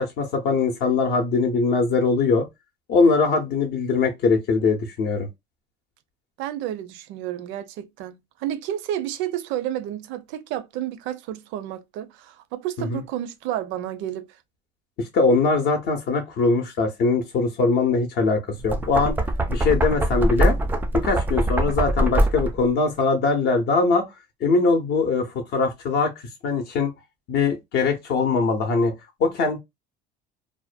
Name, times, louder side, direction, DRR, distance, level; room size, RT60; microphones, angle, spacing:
voice 1, 0.0-2.5 2.9-5.3 12.9-13.0 15.0-19.2 19.5-20.6 20.9-24.1 24.4-26.1 26.4-26.9 27.3-28.9 29.2-29.6, left 4 dB, 55° left, 0.6 m, -21 dB
voice 2, 6.4-14.3, right 12 dB, 65° right, 0.5 m, -31 dB
Knock, 18.5-22.7, right 1 dB, 10° right, 0.3 m, -23 dB
2.4 x 2.1 x 2.4 m
cardioid pair, 130°, 21 cm